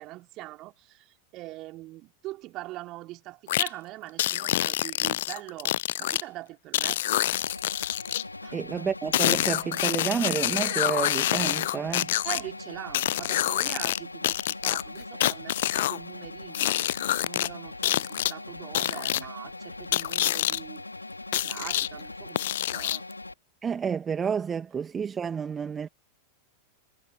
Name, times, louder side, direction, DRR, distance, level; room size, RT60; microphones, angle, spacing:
voice 1, 0.0-7.2 8.4-8.6 12.2-16.8 17.2-20.8 21.3-23.1, right 18 dB, 40° right, 3.8 m, -42 dB
sound 1, 3.5-3.7 4.2-6.2 6.7-8.2 9.1-12.4 12.9-14.0 14.2-16.0 16.5-17.5 17.8-18.3 18.7-19.2 19.9-20.6 21.3-21.9 22.4-23.1, left 14 dB, 55° left, 0.4 m, -26 dB
sound 2, 7.3-23.3, left 2 dB, 85° left, 4.8 m, -41 dB
voice 2, 8.5-12.1 23.6-25.9, right 7 dB, 20° right, 2.3 m, -30 dB
figure-of-eight pair, 90°, 0 cm